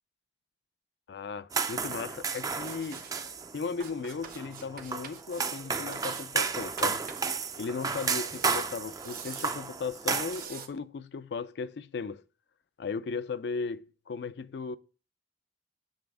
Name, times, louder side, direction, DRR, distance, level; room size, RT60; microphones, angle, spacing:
voice 1, 1.1-3.0 3.5-7.0 7.6-12.2 12.8-14.8, left 5 dB, 70° left, 0.4 m, -36 dB
sound 1, 1.5-10.4, right 5 dB, 20° right, 0.4 m, -33 dB
sound 2, 2.6-3.2 3.8-5.4 5.9-7.4 7.7-9.6 10.2-10.7, right 6 dB, 55° right, 0.8 m, -46 dB
7.2 x 3.4 x 4.7 m
head